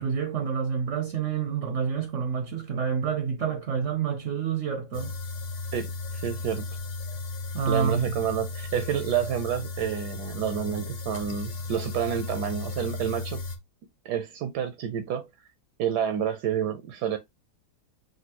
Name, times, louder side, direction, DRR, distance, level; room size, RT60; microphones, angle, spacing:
voice 1, 0.0-5.2 7.5-8.2, right 6 dB, 60° right, 0.9 m, -28 dB
sound 1, 4.9-13.6, left 3 dB, 60° left, 0.5 m, -35 dB
voice 2, 6.1-6.6 7.7-13.4 14.0-15.3 15.8-17.2, right 9 dB, 75° right, 1.2 m, -29 dB
6.0 x 2.6 x 2.9 m
omnidirectional pair, 1.8 m